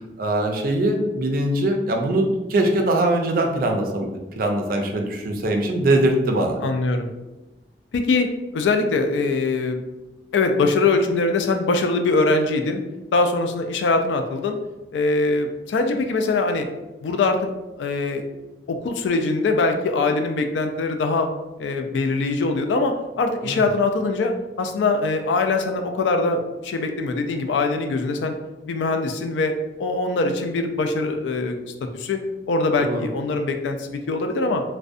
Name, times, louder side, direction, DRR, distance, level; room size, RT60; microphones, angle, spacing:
voice 1, 0.2-4.1 4.4-6.6 23.4-23.7 32.8-33.0, right 1 dB, 55° right, 2 dB, 0.4 m, -22 dB
voice 2, 6.6-7.1 7.9-8.3 8.5-9.8 10.3-12.8 13.1-14.6 14.9-16.7 17.0-17.5 17.8-18.2 18.7-21.3 21.6-28.3 28.6-31.6 31.9-32.2 32.5-34.6, left 3 dB, 90° left, 5 dB, 0.3 m, -22 dB
2.6 x 2.1 x 2.4 m, 1.0 s
head